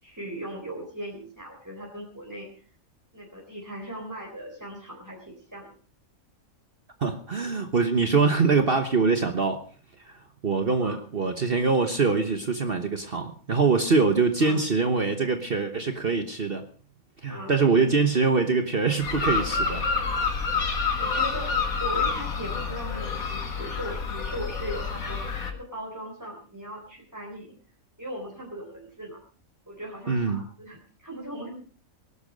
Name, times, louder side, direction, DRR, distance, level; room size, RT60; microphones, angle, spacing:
voice 1, 0.0-2.6 3.1-5.7 10.7-11.0 14.4-14.6 17.3-17.6 21.0-25.2 25.5-27.5 28.0-29.2 29.7-31.5, equal, 10° right, -3 dB, 4.2 m, -38 dB
voice 2, 7.0-9.6 10.4-16.6 17.2-19.8 20.2-20.3 30.1-30.4, right 4 dB, 45° right, 7 dB, 1.3 m, -24 dB
sound 1, 19.0-25.5, left 4 dB, 80° left, 2.4 m, -28 dB
19.5 x 12.0 x 5.2 m, 0.43 s
omnidirectional pair, 1.5 m